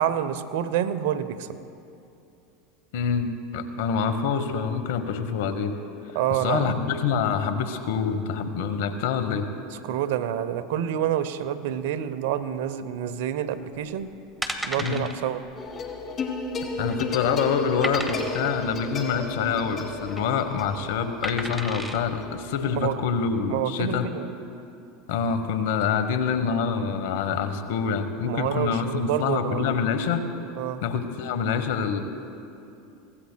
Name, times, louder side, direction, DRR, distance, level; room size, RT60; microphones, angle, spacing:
voice 1, 0.0-1.6 6.1-6.8 9.8-14.1 14.6-15.4 22.7-23.0 23.5-24.3 28.3-29.8 30.6-30.8, right 10 dB, 70° right, 13 dB, 0.7 m, -28 dB
voice 2, 2.9-5.8 6.3-9.5 14.8-15.1 16.8-24.1 25.1-30.2 30.8-32.0, left 6 dB, 70° left, 9 dB, 1.1 m, -26 dB
sound 1, 13.8-13.9 14.4-15.1 15.5-15.7 15.9-16.0 16.6-17.1 17.8-18.5 19.8-20.2 21.2-22.0 22.6-22.7, equal, 5° right, 1.2 m, -33 dB
sound 2, 15.6-22.9, left 3 dB, 35° left, 1.7 m, -34 dB
23.5 x 17.0 x 2.2 m, 2.7 s
hypercardioid pair, 95°, 0 cm